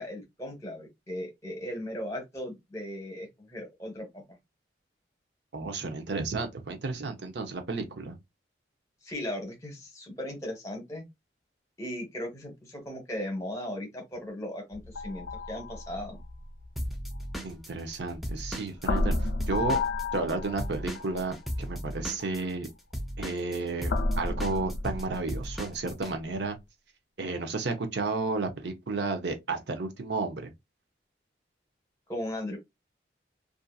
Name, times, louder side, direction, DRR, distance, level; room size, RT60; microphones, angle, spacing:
voice 1, 0.0-4.4 9.0-11.0 11.8-16.2 32.1-32.6, left 1 dB, 15° left, 0.9 m, -37 dB
voice 2, 5.5-8.1 17.4-19.1 19.5-19.8 20.1-22.7 23.2-26.6 27.2-30.5, right 3 dB, 70° right, 0.6 m, -32 dB
sound 1, 14.7-18.3 18.8-21.3 22.2-22.4 23.9-25.7, left 2 dB, 80° left, 0.5 m, -32 dB
Drum kit / Drum, 16.8-20.3 20.6-26.1, equal, ahead, 0.3 m, -36 dB
2.7 x 2.5 x 2.3 m
head